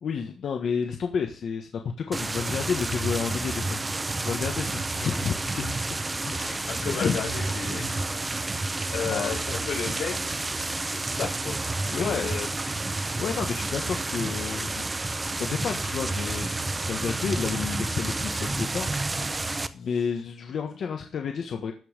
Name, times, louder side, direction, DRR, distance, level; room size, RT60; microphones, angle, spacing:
voice 1, 0.0-3.9 4.2-5.8 6.3-7.2 9.1-9.3 11.9-12.3 13.2-16.5 16.9-19.4 19.7-21.7, left 6 dB, 55° left, 4 dB, 1.4 m, -31 dB
sound 1, 2.1-19.7, right 2 dB, 15° right, 0.7 m, -30 dB
voice 2, 6.7-8.4 8.9-12.5, left 7 dB, 85° left, -1 dB, 5.4 m, -34 dB
13.5 x 5.6 x 6.7 m, 0.38 s
wide cardioid pair, 170°, 0 cm